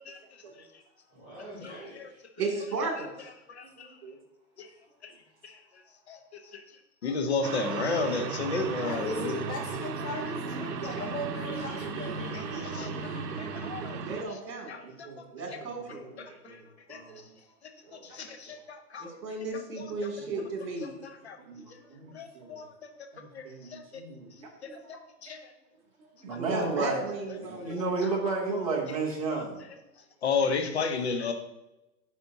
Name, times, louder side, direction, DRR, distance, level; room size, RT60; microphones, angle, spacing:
voice 1, 0.0-0.4 1.6-1.7 3.5-3.9 4.6-4.7 5.0-5.1 5.4-5.6 6.1-6.6 7.0-9.4 12.3-12.4 12.7-12.9 13.4-14.0 14.3-14.4 14.7-15.3 16.2-16.6 16.9-17.0 18.0-19.2 19.8-19.9 21.0-21.4 22.1-22.9 23.3-23.8 24.6-25.5 27.7-27.9 28.5-28.6 29.3-29.4 30.2-31.3, left 4 dB, 40° left, 6 dB, 0.7 m, -33 dB
voice 2, 1.1-2.2 5.3-5.4 11.4-13.8, equal, 10° left, -14 dB, 1.2 m, -46 dB
voice 3, 2.4-3.3 14.1-14.7 15.4-16.0 19.0-20.9 21.4-21.6 24.2-24.9 26.3-27.8, right 3 dB, 70° right, 1 dB, 2.5 m, -35 dB
voice 4, 3.6-4.2 14.8-16.6 16.9-17.2 17.8-18.6 20.2-20.4 21.5-22.7 23.1-24.3 26.2-27.0 27.4-29.6, right 3 dB, 20° right, -3 dB, 0.8 m, -35 dB
sound 1, 7.4-14.2, right 5 dB, 85° right, 0.9 m, -35 dB
voice 5, 8.8-12.3, left 1 dB, 75° left, -2 dB, 1.9 m, -37 dB
10.5 x 4.2 x 2.7 m, 0.97 s
hypercardioid pair, 180°, 49 cm